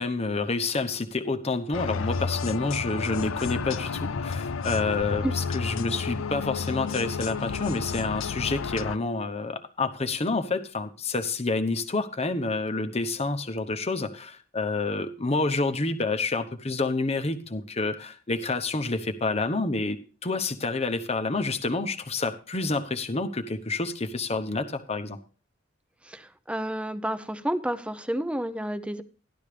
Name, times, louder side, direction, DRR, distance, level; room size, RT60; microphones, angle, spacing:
voice 1, 0.0-25.2, left 3 dB, 30° left, 8 dB, 1.0 m, -28 dB
sound 1, 1.7-9.0, left 5 dB, 80° left, 0.5 m, -31 dB
voice 2, 26.0-29.0, right 1 dB, 5° right, 11 dB, 0.7 m, -30 dB
14.0 x 11.5 x 3.4 m, 0.37 s
head